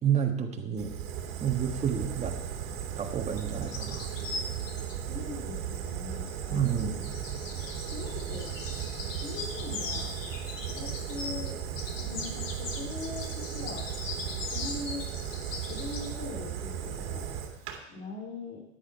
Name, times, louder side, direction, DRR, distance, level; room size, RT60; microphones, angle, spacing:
voice 1, 0.0-0.9 1.4-2.4 3.0-4.1 6.5-7.0, right 8 dB, 15° right, 2 dB, 1.6 m, -29 dB
Fire, 0.8-17.8, right 9 dB, 45° right, 2.3 m, -36 dB
sound 1, 3.4-5.0 6.3-11.5 11.8-16.1, left 4 dB, 65° left, 2.5 m, -40 dB
voice 2, 5.1-7.0 7.9-8.5 9.2-10.1 10.7-11.5 12.0-13.9 14.5-15.1 15.7-17.3 17.9-18.6, left 3 dB, 25° left, -1 dB, 2.7 m, -41 dB
14.0 x 11.0 x 4.6 m, 0.78 s
hypercardioid pair, 120°, 41 cm